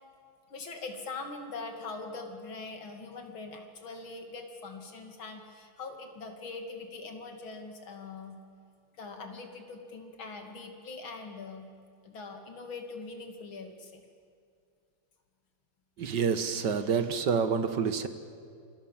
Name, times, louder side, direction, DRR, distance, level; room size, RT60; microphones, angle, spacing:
voice 1, 0.5-8.4 8.9-11.7 12.0-14.0, left 3 dB, 90° left, 4 dB, 3.3 m, -42 dB
voice 2, 16.0-18.1, right 6 dB, 60° right, 11 dB, 1.9 m, -28 dB
28.0 x 24.5 x 7.4 m, 2.3 s
omnidirectional pair, 2.1 m